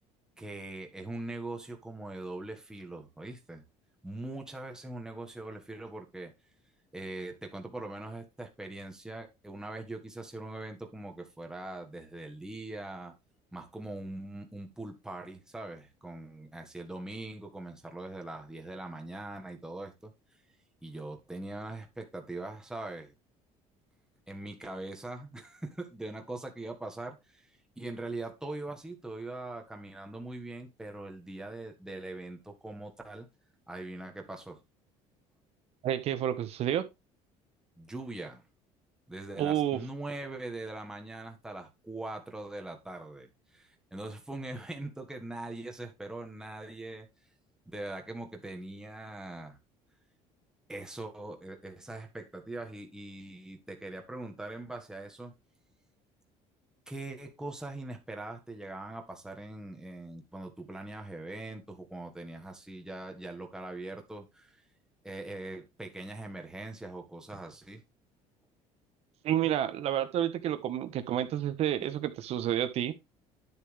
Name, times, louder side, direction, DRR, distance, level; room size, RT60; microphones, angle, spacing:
voice 1, 0.4-3.6 4.0-6.3 6.9-13.2 13.5-20.1 20.8-23.1 24.3-27.5 27.8-33.3 33.7-34.6 37.8-38.4 39.1-47.1 47.7-49.6 50.7-55.3 56.9-64.6 65.0-67.8 70.5-70.6 71.8-72.0, right 2 dB, 5° right, 1.6 m, -41 dB
voice 2, 35.8-36.8 39.4-39.8 69.2-72.9, right 11 dB, 50° right, 1.2 m, -29 dB
10.5 x 6.8 x 3.3 m
cardioid pair, 155°, 13 cm